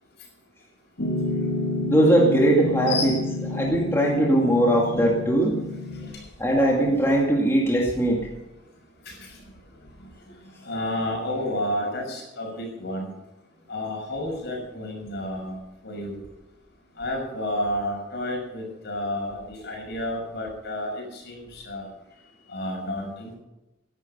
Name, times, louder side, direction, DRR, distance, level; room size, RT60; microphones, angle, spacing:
Piano, 1.0-6.1, left 2 dB, 85° left, 2.9 m, -29 dB
voice 1, 1.8-3.1 3.5-5.6 6.4-8.2, right 1 dB, 15° left, -2 dB, 2.3 m, -20 dB
voice 2, 2.9-3.2 9.1-9.2 10.6-13.1 13.7-15.6 15.8-16.2 17.0-21.9 22.5-23.4, left 1 dB, 60° left, 1 dB, 6.4 m, -30 dB
16.5 x 11.5 x 5.6 m, 0.96 s
head